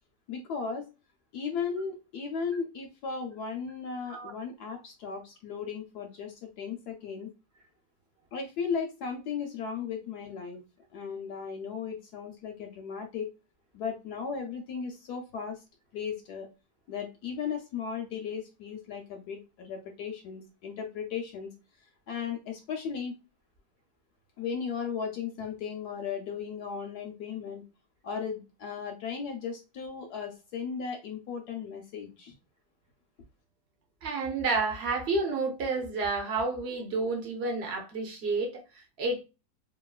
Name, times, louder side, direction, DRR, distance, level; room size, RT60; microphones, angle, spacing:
voice 1, 0.3-0.8 1.3-7.3 8.3-10.6 10.9-13.3 13.7-15.6 15.9-16.5 16.9-21.5 22.1-23.2 24.4-27.6 28.0-32.3, left 6 dB, 70° left, 1.0 m, -36 dB
voice 2, 34.0-39.2, right 3 dB, 65° right, 0.6 m, -30 dB
2.9 x 2.6 x 2.3 m
omnidirectional pair, 1.9 m